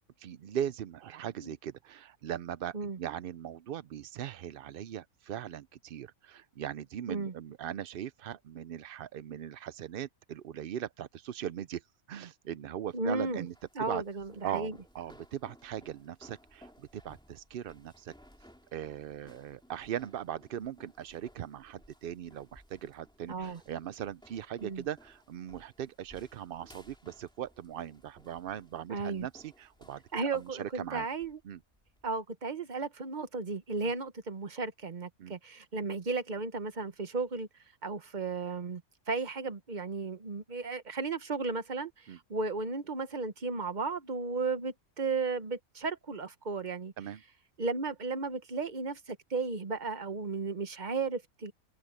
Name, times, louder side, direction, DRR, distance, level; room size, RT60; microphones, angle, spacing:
voice 1, 0.2-11.8 12.1-13.5 13.8-14.0 14.4-18.1 18.7-30.0 30.3-31.1 31.4-31.6 35.2-35.3 42.1-42.2 47.0-47.2, right 10 dB, 65° right, 0.5 m, -39 dB
sound 1, 12.8-32.1, equal, 5° left, 3.0 m, -60 dB
voice 2, 12.9-13.5 13.7-14.7 23.3-23.6 24.6-24.8 28.9-29.3 30.1-31.4 32.0-37.5 37.8-38.8 39.1-46.9 47.6-51.5, right 4 dB, 35° right, 1.2 m, -34 dB
omnidirectional pair, 1.5 m